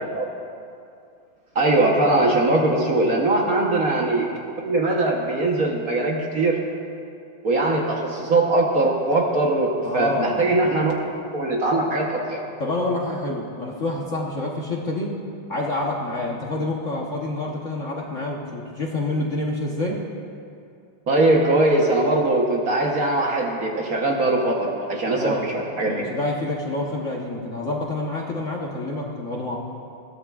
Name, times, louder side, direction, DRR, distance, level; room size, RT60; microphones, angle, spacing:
voice 1, 1.5-4.3 4.6-6.6 7.4-10.9 11.3-12.4 21.1-26.0, right 2 dB, 50° right, -1 dB, 1.3 m, -21 dB
voice 2, 9.8-10.4 12.6-15.2 15.5-20.0 25.1-25.5 25.8-29.6, left 2 dB, 45° left, -2 dB, 1.1 m, -27 dB
21.0 x 16.0 x 2.4 m, 2.5 s
omnidirectional pair, 2.4 m